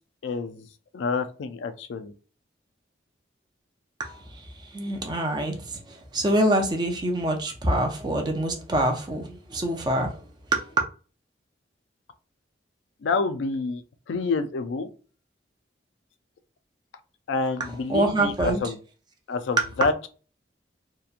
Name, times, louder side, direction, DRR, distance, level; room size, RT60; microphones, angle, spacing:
voice 1, 0.2-0.7 0.9-2.1 13.0-13.8 14.1-14.9 17.3-18.8 19.3-20.1, left 4 dB, 90° left, 0.4 m, -28 dB
voice 2, 4.7-10.2 10.5-10.8 17.6-18.6, right 1 dB, 25° right, 0.5 m, -25 dB
2.8 x 2.2 x 2.4 m
head